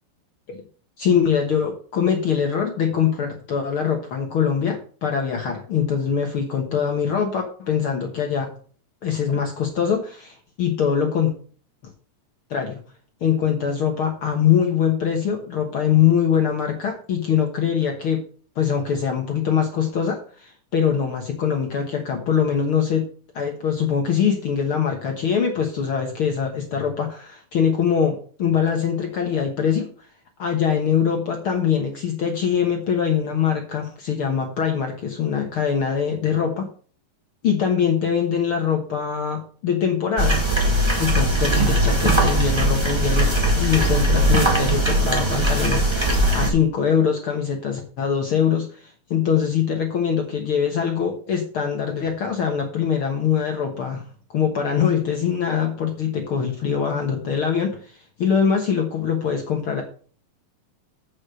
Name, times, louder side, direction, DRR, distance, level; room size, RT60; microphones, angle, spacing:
voice 1, 1.0-8.5 9.0-11.3 12.5-12.8 13.2-18.2 18.6-23.0 23.4-30.1 30.4-36.7 37.4-40.4 41.0-43.3 43.6-54.0 54.3-59.8, left 7 dB, 55° left, 2 dB, 1.6 m, -23 dB
sound 1, 40.2-46.5, right 1 dB, 10° right, 1.2 m, -19 dB
8.4 x 6.8 x 5.0 m, 0.42 s
omnidirectional pair, 3.9 m